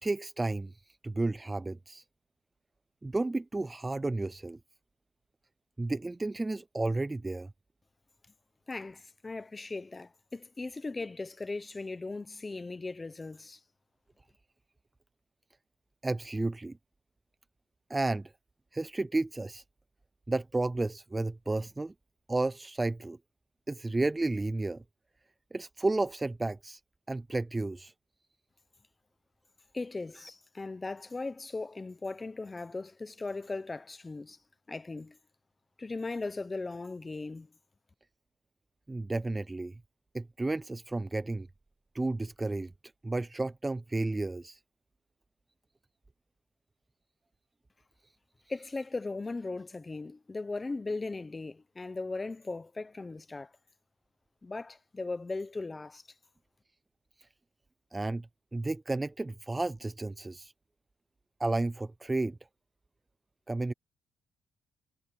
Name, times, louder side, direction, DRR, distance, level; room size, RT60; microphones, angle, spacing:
voice 1, 0.0-0.7 1.0-2.0 3.0-4.6 5.8-7.5 16.0-16.8 17.9-18.3 18.7-19.6 20.3-21.9 22.3-23.2 23.7-24.8 25.5-26.8 27.1-27.9 38.9-39.7 40.1-41.5 41.9-42.7 43.0-44.6 57.9-58.3 58.5-60.5 61.4-62.4 63.5-63.7, right 2 dB, 15° right, 0.3 m, -32 dB
voice 2, 8.7-13.6 29.7-34.4 34.7-35.2 35.8-37.5 48.5-53.5 54.4-56.0, left 3 dB, 20° left, 1.0 m, -38 dB
cardioid pair, 135°, 0 cm